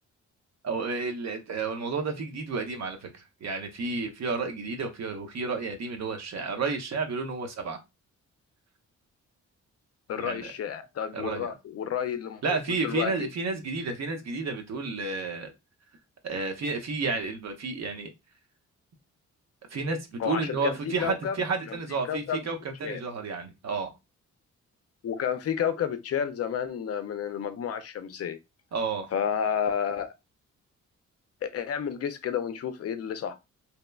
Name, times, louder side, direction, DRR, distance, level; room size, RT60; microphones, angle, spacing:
voice 1, 0.6-7.8 10.2-10.5 11.1-11.5 12.4-15.5 16.2-18.1 19.7-23.9 28.7-29.1, right 4 dB, 60° right, 0.7 m, -31 dB
voice 2, 10.1-12.6 12.8-13.3 20.2-21.4 21.7-21.8 22.1-22.4 22.8-23.0 25.0-28.4 29.1-30.1 31.4-33.4, left 8 dB, 55° left, 0.4 m, -30 dB
2.9 x 2.0 x 2.3 m
cardioid pair, 75°, 31 cm